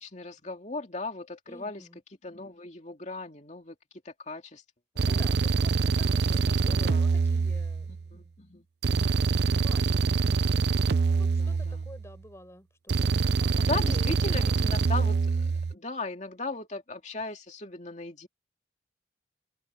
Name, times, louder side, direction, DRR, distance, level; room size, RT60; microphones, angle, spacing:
voice 1, 0.0-1.8 2.2-3.8 4.0-4.6 4.9-5.2 6.3-7.1 7.9-8.7 11.2-11.8 13.6-18.3, left 3 dB, 35° left, 2.6 m, -38 dB
voice 2, 1.5-2.0 5.0-8.3 9.6-10.8 11.1-15.2, left 1 dB, 15° left, 5.2 m, -50 dB
sound 1, 5.0-8.1 8.8-12.1 12.9-15.7, right 4 dB, 60° right, 0.5 m, -25 dB
head